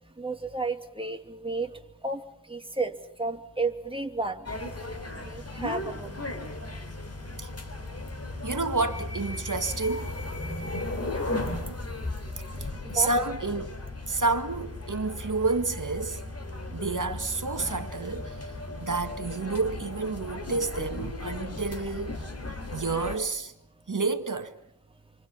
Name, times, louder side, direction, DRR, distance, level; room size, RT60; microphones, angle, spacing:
voice 1, 0.2-4.5 5.2-6.3 10.7-11.3 12.3-13.1 21.8-21.9, right 3 dB, 10° right, 2.6 m, -33 dB
sound 1, 4.5-23.2, left 2 dB, 35° left, 3.4 m, -36 dB
voice 2, 8.4-10.1 12.9-13.8 14.0-16.2 16.7-18.5 18.8-22.2 22.7-23.5 23.9-24.5, right 3 dB, 45° right, 2.0 m, -29 dB
29.5 x 24.5 x 5.7 m
wide cardioid pair, 65°, 42 cm